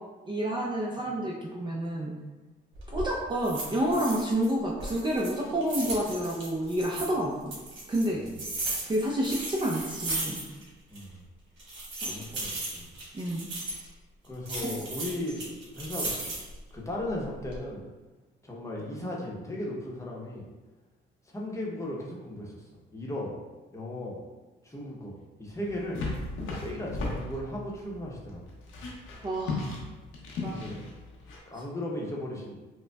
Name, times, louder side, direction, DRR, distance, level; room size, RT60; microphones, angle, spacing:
voice 1, 0.3-2.1 2.9-7.6 7.9-8.2 8.8-10.4 12.0-12.2 13.1-13.5 29.2-29.8 30.4-30.6, right 1 dB, 25° right, -2 dB, 0.5 m, -29 dB
sound 1, 2.7-3.1 3.4-4.5 4.8-7.1 7.5-10.7 10.9-11.0 11.6-13.8 14.4-16.6 17.1-17.6, right 2 dB, 65° right, 1.3 m, -36 dB
voice 2, 10.9-11.2 12.0-12.9 14.2-16.1 16.7-17.8 18.4-20.4 21.3-22.6 22.9-23.3 23.7-24.1 24.6-26.0 26.6-28.4 30.5-30.8 31.5-32.6, left 1 dB, 15° left, -4 dB, 0.8 m, -36 dB
sound 2, 25.6-31.4, left 3 dB, 90° left, 0.7 m, -36 dB
5.1 x 2.1 x 2.3 m, 1.2 s
cardioid pair, 90°, 20 cm